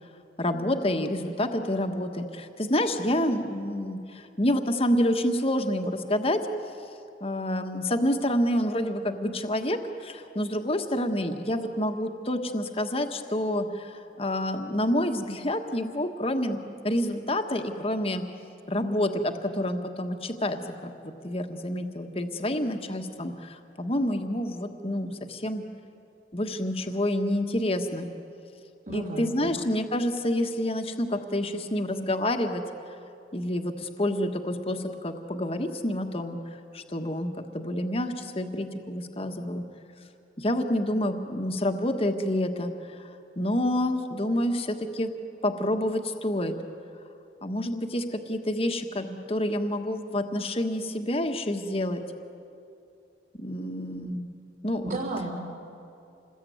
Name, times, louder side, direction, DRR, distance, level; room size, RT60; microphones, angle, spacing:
voice 1, 0.4-6.5 7.2-18.2 18.7-25.6 26.3-28.1 28.9-32.6 33.3-36.4 36.7-39.6 40.4-45.1 45.4-46.5 47.4-52.0 53.4-54.3 54.6-55.0, left 1 dB, 35° left, 5 dB, 1.5 m, -28 dB
voice 2, 28.9-29.5 54.8-55.4, right 1 dB, 45° right, -4 dB, 3.8 m, -33 dB
27.5 x 20.5 x 9.4 m, 2.6 s
head